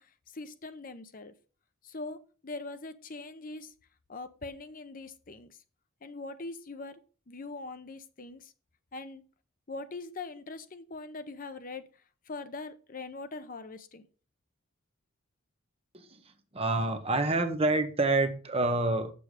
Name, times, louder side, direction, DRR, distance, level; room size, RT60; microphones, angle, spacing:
voice 1, 0.0-1.3 1.8-3.7 4.1-5.6 6.0-7.0 7.3-8.5 8.9-9.3 9.7-11.9 12.3-14.0, left 3 dB, 40° left, 0.7 m, -42 dB
voice 2, 16.5-19.1, right 2 dB, 30° right, 0.9 m, -27 dB
7.8 x 6.9 x 5.0 m
head